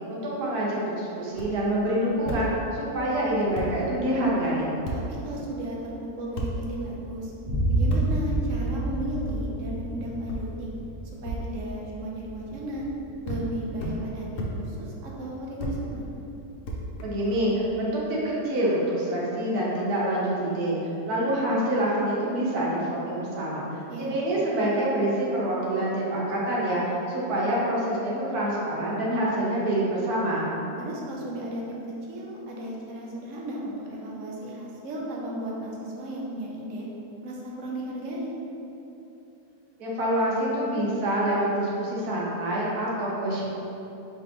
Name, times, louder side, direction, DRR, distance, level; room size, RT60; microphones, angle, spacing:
voice 1, 0.1-4.7 17.0-20.8 21.1-23.6 24.0-30.5 39.8-43.4, right 1 dB, 85° right, -5 dB, 1.4 m, -26 dB
sound 1, 1.3-1.5 2.2-2.4 3.2-3.3 3.5-3.7 4.8-5.0 6.3-6.5 7.9-8.0 9.3-9.4 10.3-10.4 11.2-11.4 12.5-12.9 13.2-13.4 13.8-14.0 14.4-14.5 15.6-15.8 16.6-17.3, right 1 dB, 65° left, 1.0 m, -32 dB
voice 2, 4.9-7.3 7.7-10.7 11.2-12.8 13.2-16.1 23.9-24.1 30.8-36.9 37.2-38.3, right 1 dB, 65° right, -3 dB, 1.0 m, -35 dB
sound 2, 7.5-14.9, right 2 dB, 40° right, 0.9 m, -30 dB
4.8 x 3.4 x 2.9 m, 2.9 s
omnidirectional pair, 1.6 m